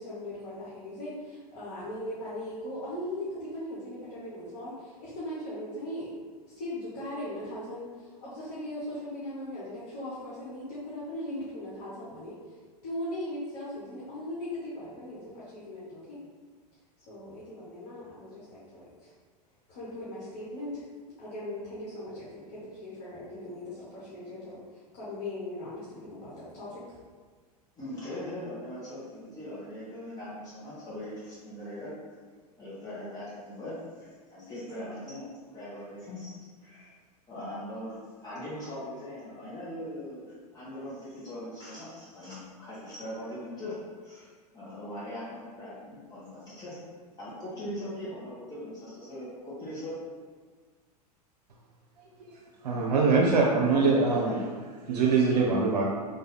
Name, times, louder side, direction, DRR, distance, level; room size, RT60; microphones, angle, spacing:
voice 1, 0.0-6.1 6.5-12.4 12.8-16.2 17.1-19.1 19.7-20.9 21.2-24.6 24.9-26.8, left 1 dB, 55° left, -9 dB, 1.4 m, -39 dB
voice 2, 27.8-31.9 32.6-35.3 35.5-36.9 37.3-44.3 44.5-46.8 47.2-50.0, left 1 dB, 20° left, -10 dB, 1.5 m, -40 dB
voice 3, 52.2-55.9, right 4 dB, 80° right, -3 dB, 0.6 m, -24 dB
3.6 x 2.7 x 3.9 m, 1.5 s
hypercardioid pair, 90°, 20 cm